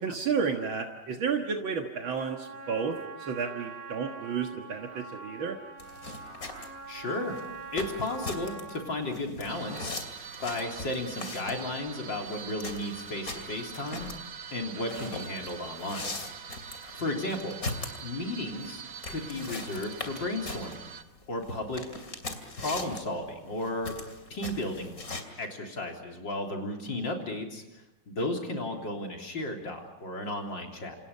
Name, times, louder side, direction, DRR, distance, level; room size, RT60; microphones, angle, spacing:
voice 1, 0.0-5.6 14.9-15.1, right 6 dB, 70° right, 3 dB, 2.3 m, -32 dB
Trumpet, 2.2-9.1, right 4 dB, 90° right, 3.5 m, -44 dB
sound 1, 5.8-25.2, left 3 dB, 40° left, 3.1 m, -41 dB
voice 2, 6.9-7.4 7.7-10.0 10.4-14.1 14.5-16.1 17.0-17.6 18.0-18.8 19.1-20.8 21.3-21.8 22.6-23.9 24.3-25.0 25.4-27.6 28.1-31.0, left 1 dB, 60° left, 1 dB, 4.2 m, -34 dB
sound 2, 9.5-21.0, right 7 dB, 50° right, 1.7 m, -44 dB
28.0 x 28.0 x 5.6 m, 0.94 s
omnidirectional pair, 2.3 m